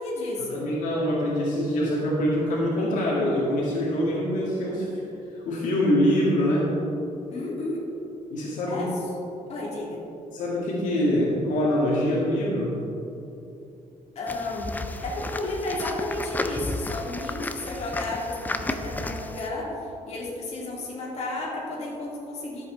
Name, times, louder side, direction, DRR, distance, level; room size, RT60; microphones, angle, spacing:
voice 1, 0.0-0.7 7.3-7.8 8.7-9.0 9.5-10.0 14.1-22.6, left 2 dB, 55° left, -4 dB, 2.5 m, -32 dB
voice 2, 0.5-4.9 5.3-6.7 8.3-8.8 10.3-12.7, equal, 80° left, -5 dB, 2.1 m, -24 dB
sound 1, 14.3-19.5, left 2 dB, 15° left, 0.4 m, -33 dB
12.5 x 7.9 x 3.9 m, 2.8 s
cardioid pair, 145°, 13 cm